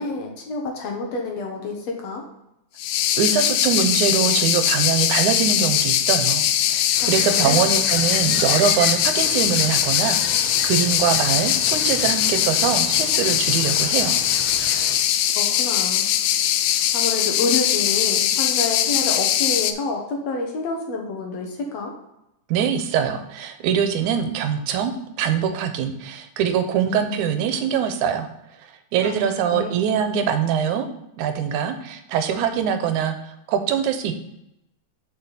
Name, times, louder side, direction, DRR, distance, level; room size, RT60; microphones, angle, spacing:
voice 1, 0.0-2.3 7.0-7.6 15.4-16.1 16.9-21.9 29.0-29.7, left 3 dB, 65° left, 1 dB, 2.3 m, -28 dB
sound 1, 2.8-19.7, left 11 dB, 80° left, 2.0 m, -21 dB
voice 2, 3.2-14.2 22.5-28.3 28.6-30.9 31.2-34.2, right 8 dB, 80° right, 8 dB, 2.2 m, -23 dB
sound 2, 6.9-15.0, right 3 dB, 60° right, 2.3 m, -36 dB
6.6 x 6.0 x 4.0 m, 0.86 s
omnidirectional pair, 3.5 m